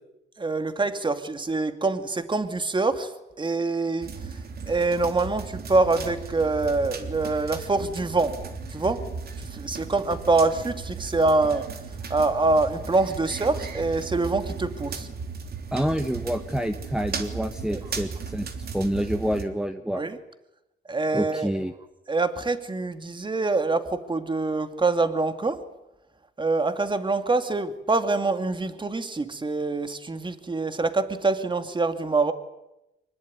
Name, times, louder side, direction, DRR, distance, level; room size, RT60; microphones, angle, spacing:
voice 1, 0.4-3.1 3.4-4.1 4.7-9.1 9.4-11.7 12.1-15.1 17.7-17.8 19.9-20.2 20.9-21.5 22.1-25.6 26.4-32.3, right 3 dB, 25° right, 2.4 m, -25 dB
sound 1, 4.0-19.4, right 5 dB, 50° right, 3.4 m, -36 dB
voice 2, 15.7-20.0 21.1-21.7, equal, 5° right, 1.3 m, -28 dB
24.5 x 20.5 x 9.7 m
cardioid pair, 90°, 20 cm